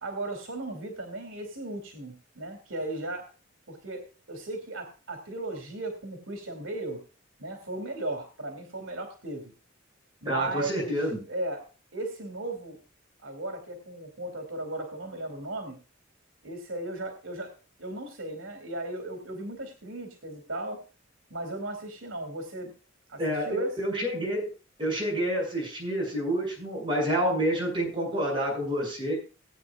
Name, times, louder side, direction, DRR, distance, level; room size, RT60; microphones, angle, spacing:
voice 1, 0.0-3.3 3.7-7.0 7.4-9.5 10.2-11.7 11.9-12.8 13.2-15.8 16.4-17.5 17.8-20.8 21.3-22.7 23.1-23.7, right 2 dB, 80° right, 5 dB, 2.6 m, -36 dB
voice 2, 10.2-11.2 23.2-24.5 24.8-29.1, equal, 25° right, -2 dB, 6.5 m, -28 dB
19.0 x 8.9 x 2.4 m, 0.34 s
head